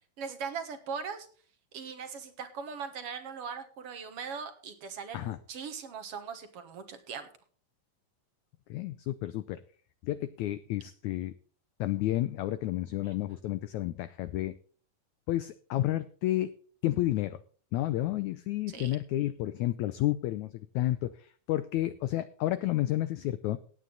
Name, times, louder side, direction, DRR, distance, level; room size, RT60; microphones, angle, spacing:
voice 1, 0.2-1.3 1.7-7.3 13.0-13.1 18.7-19.0, right 6 dB, 55° right, 9 dB, 1.9 m, -40 dB
voice 2, 8.7-9.6 10.0-11.3 11.8-14.6 15.3-16.5 16.8-17.4 17.7-23.6, left 15 dB, 85° left, 13 dB, 1.6 m, -31 dB
16.5 x 9.3 x 4.0 m, 0.43 s
omnidirectional pair, 4.1 m